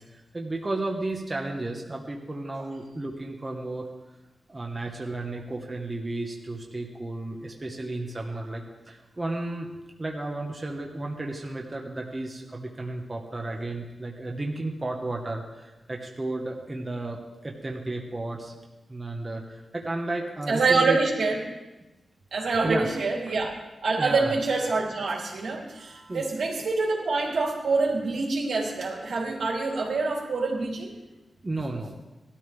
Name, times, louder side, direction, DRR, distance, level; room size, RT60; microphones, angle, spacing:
voice 1, 0.0-3.9 4.5-9.7 10.0-18.6 18.9-21.0 22.6-22.9 23.3-23.4 23.9-24.3 26.1-26.3 31.4-31.9, right 2 dB, 20° right, 0 dB, 1.2 m, -33 dB
voice 2, 20.5-21.4 22.3-23.5 23.8-30.9, right 3 dB, 85° right, -2 dB, 3.3 m, -26 dB
19.0 x 13.0 x 3.5 m, 1.1 s
wide cardioid pair, 165°, 0 cm